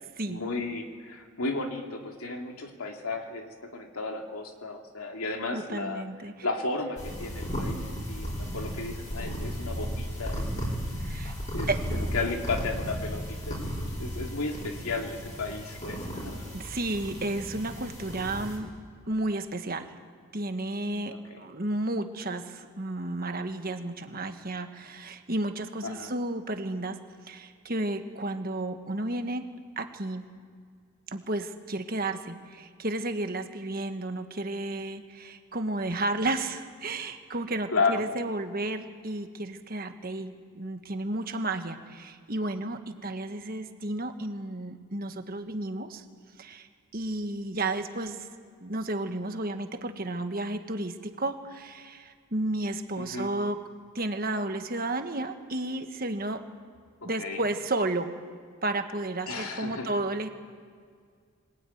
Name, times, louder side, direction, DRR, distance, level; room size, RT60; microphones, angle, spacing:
voice 1, 0.3-6.0 6.4-10.7 11.5-13.6 14.0-16.4 21.3-21.5 25.8-26.1 37.7-38.1 53.0-53.3 57.0-57.4 59.3-60.0, left 3 dB, 90° left, 2 dB, 2.6 m, -33 dB
voice 2, 5.5-6.3 11.0-11.3 11.7-12.0 16.5-18.7 19.1-19.9 20.3-27.0 27.2-29.5 29.8-30.2 31.1-46.0 46.4-46.7 46.9-48.3 48.6-53.6 53.9-56.4 57.0-58.1 58.6-60.3, right 2 dB, 40° right, 7 dB, 1.4 m, -32 dB
sound 1, 7.0-18.6, equal, 35° left, 5.0 m, -35 dB
23.5 x 17.5 x 9.4 m, 2.1 s
head